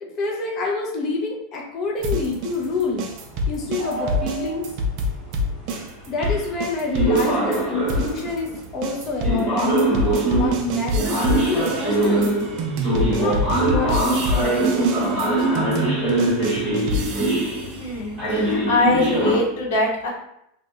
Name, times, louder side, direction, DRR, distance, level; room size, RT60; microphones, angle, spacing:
voice 1, 0.0-3.1 3.5-4.7 6.1-10.0 10.3-12.4 13.2-15.9, left 3 dB, 30° left, -1 dB, 0.5 m, -28 dB
sound 1, 2.0-7.6 7.9-17.6, left 1 dB, 40° right, 0.4 m, -27 dB
sound 2, 3.8-4.7 5.7-5.8 6.2-6.6 6.9-8.3 9.2-19.4, right 2 dB, 5° left, 1.3 m, -22 dB
voice 2, 17.8-20.1, left 2 dB, 75° left, -2 dB, 0.9 m, -23 dB
2.7 x 2.1 x 3.5 m, 0.78 s
supercardioid pair, 175°, 0 cm